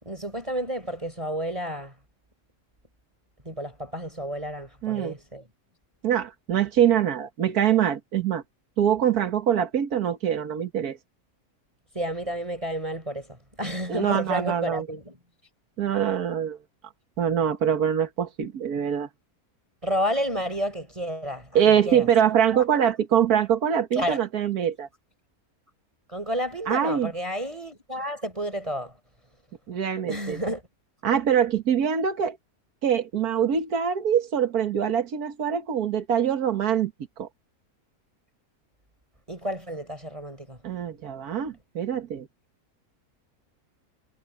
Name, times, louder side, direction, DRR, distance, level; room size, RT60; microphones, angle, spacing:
voice 1, 0.0-1.9 3.5-5.5 11.9-15.2 19.8-22.1 22.5-22.6 23.9-24.2 26.1-28.9 30.1-30.6 39.3-40.6, equal, 20° right, 5.4 m, -31 dB
voice 2, 4.8-5.1 6.0-8.4 8.8-11.0 13.9-14.9 15.8-16.6 17.2-19.1 21.5-24.9 26.7-27.1 29.7-30.4 31.0-32.4 32.8-36.9 37.2-37.3 40.6-42.3, right 8 dB, 85° right, 1.9 m, -24 dB
omnidirectional pair, 1.6 m